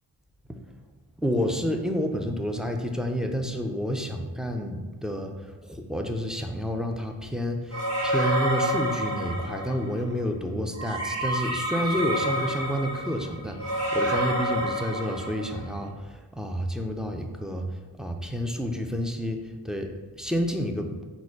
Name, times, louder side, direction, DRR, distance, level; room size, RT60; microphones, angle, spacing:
voice 1, 1.2-5.3 5.6-17.6 18.0-21.1, equal, ahead, 4 dB, 0.3 m, -29 dB
sound 1, 7.7-9.9 10.8-15.7, equal, 35° right, 1.0 m, -28 dB
4.1 x 2.2 x 4.5 m, 1.3 s
cardioid pair, 65°, 42 cm